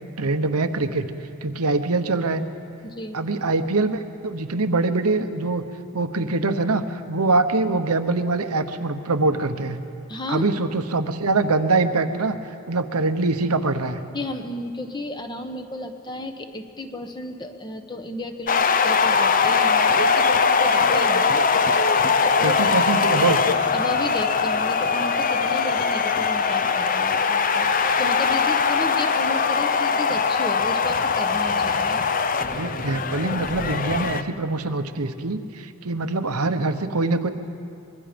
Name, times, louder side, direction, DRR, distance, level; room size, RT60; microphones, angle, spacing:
voice 1, 0.2-1.0 1.4-2.4 3.1-5.6 5.9-9.8 10.3-12.4 12.7-14.0 22.4-23.4 32.5-37.3, right 3 dB, 90° right, 8 dB, 1.1 m, -23 dB
voice 2, 2.8-3.2 10.1-10.5 14.1-21.5 22.2-22.6 23.7-32.0, left 1 dB, 20° left, 6 dB, 1.1 m, -33 dB
sound 1, 18.5-34.2, left 5 dB, 35° left, 0.6 m, -21 dB
25.0 x 22.5 x 5.2 m, 2.5 s
head